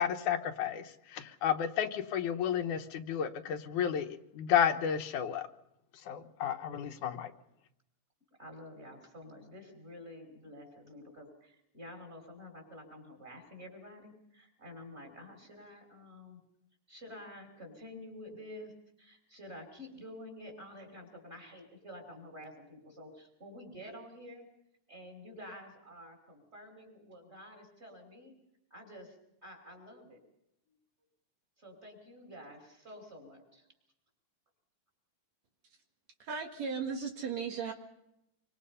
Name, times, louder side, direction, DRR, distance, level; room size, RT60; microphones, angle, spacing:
voice 1, 0.0-5.5 6.1-7.3, left 9 dB, 75° left, 7 dB, 2.6 m, -32 dB
voice 2, 8.4-16.4 16.9-18.7 19.0-24.5 24.9-28.3 28.7-29.2 29.4-30.2 31.6-33.7, left 1 dB, 20° right, 2 dB, 5.9 m, -49 dB
voice 3, 36.2-37.7, right 6 dB, 60° right, 4 dB, 2.9 m, -36 dB
26.5 x 24.5 x 5.6 m, 0.82 s
omnidirectional pair, 3.5 m